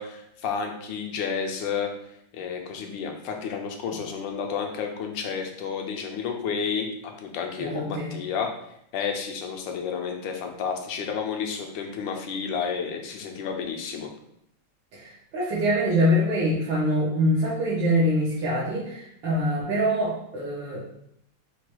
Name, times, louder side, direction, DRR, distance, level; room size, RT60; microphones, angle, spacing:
voice 1, 0.0-1.9 2.3-8.5 8.9-14.1, left 6 dB, 80° left, 3 dB, 1.3 m, -31 dB
voice 2, 7.6-8.1 14.9-20.8, equal, 80° right, -7 dB, 1.8 m, -24 dB
4.7 x 2.3 x 4.5 m, 0.75 s
omnidirectional pair, 2.1 m